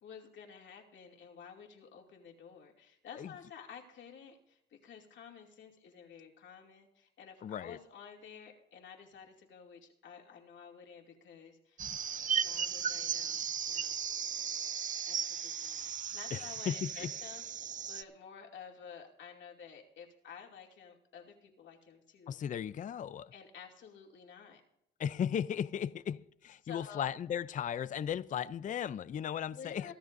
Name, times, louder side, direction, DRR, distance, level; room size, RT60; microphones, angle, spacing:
voice 1, 0.0-11.9 12.4-14.0 15.1-22.4 23.3-24.6 26.6-27.1 29.5-29.9, left 7 dB, 70° left, 2.6 m, -52 dB
voice 2, 7.4-7.8 16.3-17.1 22.3-23.3 25.0-29.9, left 9 dB, 40° left, 0.4 m, -36 dB
sound 1, 11.8-18.0, right 7 dB, 40° right, 0.6 m, -36 dB
23.0 x 13.5 x 2.6 m
cardioid pair, 90°, 20 cm